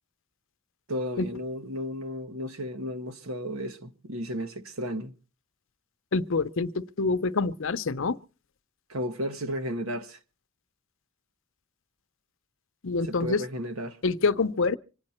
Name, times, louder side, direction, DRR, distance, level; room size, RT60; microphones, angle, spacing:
voice 1, 0.9-5.1 8.9-10.2 13.0-14.0, equal, 80° right, 1.4 m, -33 dB
voice 2, 6.1-8.2 12.8-13.4 14.0-14.8, left 4 dB, 65° left, 0.7 m, -26 dB
25.5 x 9.7 x 4.3 m
head